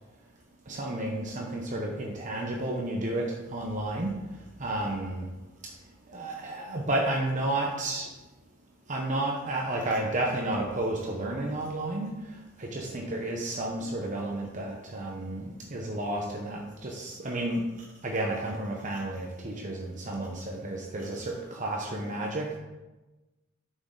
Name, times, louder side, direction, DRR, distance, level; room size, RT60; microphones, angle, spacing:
voice 1, 0.7-5.3 5.6-5.7 6.1-8.1 8.9-17.7 18.0-22.6, right 1 dB, 35° right, 0 dB, 0.9 m, -32 dB
9.5 x 6.4 x 3.9 m, 1.1 s
head